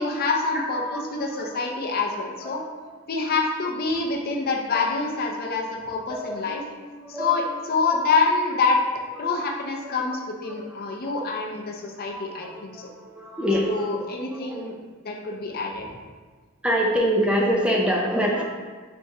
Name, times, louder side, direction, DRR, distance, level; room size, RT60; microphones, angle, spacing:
voice 1, 0.0-2.6 3.1-6.6 7.1-8.8 9.2-12.9 13.6-14.8 15.0-15.9, left 4 dB, 50° left, 1 dB, 0.5 m, -26 dB
voice 2, 0.7-1.4 2.4-2.7 4.7-4.9 6.1-6.7 6.9-7.5 9.2-9.3 9.8-10.0 10.5-10.8 11.0-11.2 12.1-13.9 14.3-14.6 16.6-18.4, equal, 5° right, -2 dB, 0.4 m, -26 dB
4.2 x 3.4 x 2.7 m, 1.5 s
head